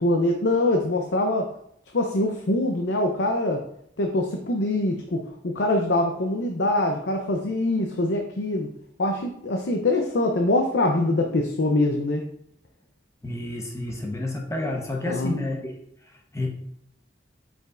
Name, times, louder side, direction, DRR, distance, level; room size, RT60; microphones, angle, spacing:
voice 1, 0.0-1.5 1.9-3.6 4.0-8.7 9.0-12.3 15.1-15.3, left 1 dB, 80° left, 3 dB, 0.7 m, -24 dB
voice 2, 13.2-15.7 16.1-16.5, left 1 dB, 15° left, 0 dB, 1.0 m, -30 dB
7.9 x 5.1 x 2.5 m, 0.72 s
head